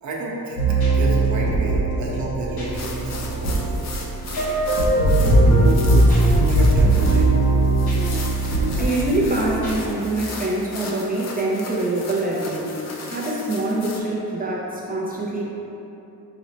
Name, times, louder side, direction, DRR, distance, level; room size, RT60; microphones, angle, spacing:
voice 1, 0.0-3.8 5.0-7.3, right 1 dB, 50° right, -4 dB, 0.7 m, -30 dB
sound 1, 0.6-9.8, right 2 dB, 85° left, 0.9 m, -19 dB
sound 2, 2.7-14.0, left 3 dB, 45° left, 0.5 m, -37 dB
voice 2, 8.8-12.8 13.1-15.4, right 2 dB, 25° right, -5 dB, 0.3 m, -24 dB
5.0 x 2.1 x 3.9 m, 3.0 s
wide cardioid pair, 145°, 37 cm